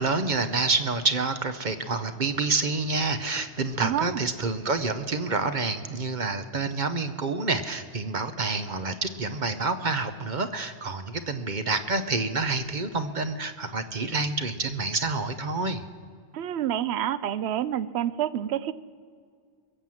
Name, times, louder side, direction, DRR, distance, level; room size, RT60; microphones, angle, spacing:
voice 1, 0.0-15.8, right 3 dB, 45° right, 9 dB, 0.9 m, -28 dB
voice 2, 3.8-4.2 16.3-18.7, right 11 dB, 75° right, 17 dB, 0.9 m, -28 dB
22.0 x 7.4 x 7.6 m, 2.1 s
omnidirectional pair, 1.1 m